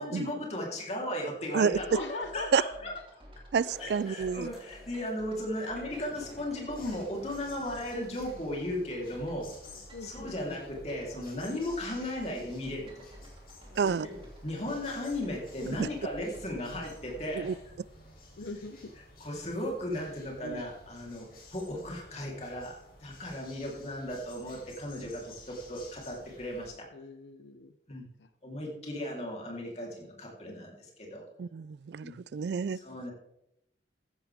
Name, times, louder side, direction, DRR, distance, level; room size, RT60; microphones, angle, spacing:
voice 1, 0.0-2.9 3.8-9.5 10.0-13.0 14.0-17.6 19.2-22.8 23.0-26.9 27.9-28.0 28.4-31.2 32.0-32.2 32.7-33.1, left 1 dB, 35° left, -1 dB, 3.5 m, -36 dB
sound 1, 1.7-17.6, equal, 30° right, 2.8 m, -53 dB
voice 2, 1.9-2.5 9.9-10.4 13.8-14.1 18.4-18.9 26.9-27.8 28.2-28.3 28.8-28.9, left 3 dB, 85° left, 11 dB, 0.7 m, -42 dB
voice 3, 3.5-4.5 13.8-14.1 15.8-15.9 17.3-17.5 20.4-20.6 31.4-32.8, right 6 dB, 70° right, 21 dB, 0.3 m, -29 dB
sound 2, 3.6-8.9 10.9-11.0 13.8-13.9 14.7-15.0 15.6-17.3 17.8-17.9 18.8-18.9 19.4-19.7, equal, ahead, 4.2 m, -52 dB
sound 3, 6.7-26.7, left 2 dB, 55° left, 3.8 m, -53 dB
14.5 x 11.0 x 3.5 m, 0.83 s
head